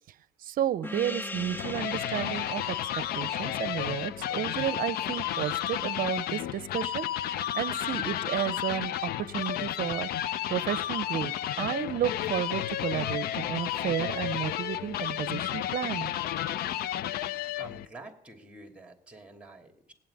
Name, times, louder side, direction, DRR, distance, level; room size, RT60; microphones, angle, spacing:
voice 1, 0.4-2.9 3.1-10.1 10.5-16.1, right 11 dB, 55° right, 17 dB, 0.7 m, -32 dB
Gong, 0.8-5.8, left 2 dB, 10° left, 0.7 m, -42 dB
sound 1, 1.3-17.9, left 12 dB, 65° left, 0.5 m, -32 dB
voice 2, 17.6-19.9, right 2 dB, 5° right, 5 dB, 2.7 m, -48 dB
18.0 x 7.6 x 9.7 m, 0.77 s
cardioid pair, 110°, 17 cm